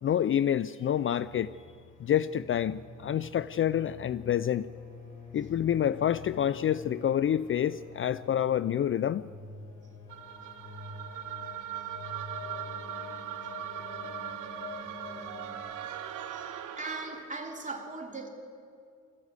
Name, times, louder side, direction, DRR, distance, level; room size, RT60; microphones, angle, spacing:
voice 1, 0.0-1.5 2.0-4.7 5.3-9.2, left 10 dB, 45° left, 0.5 m, -28 dB
sound 1, 1.1-15.6, left 4 dB, 70° left, 5.6 m, -46 dB
sound 2, 10.1-17.3, right 11 dB, 90° right, 1.2 m, -40 dB
voice 2, 15.8-18.3, right 3 dB, 25° right, 3.0 m, -40 dB
25.0 x 14.0 x 8.3 m
cardioid pair, 90°, 30 cm